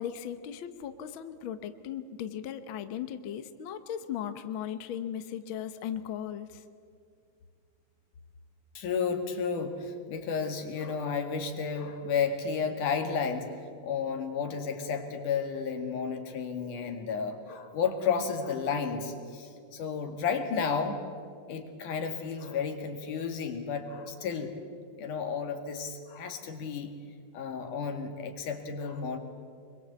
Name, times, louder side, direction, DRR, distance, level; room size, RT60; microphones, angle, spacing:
voice 1, 0.0-6.6, left 9 dB, 60° left, 10 dB, 1.3 m, -37 dB
voice 2, 8.8-21.0 21.5-24.5 25.0-26.9 27.3-29.2, left 6 dB, 80° left, 5 dB, 3.6 m, -32 dB
25.0 x 22.5 x 8.2 m, 2.3 s
omnidirectional pair, 3.5 m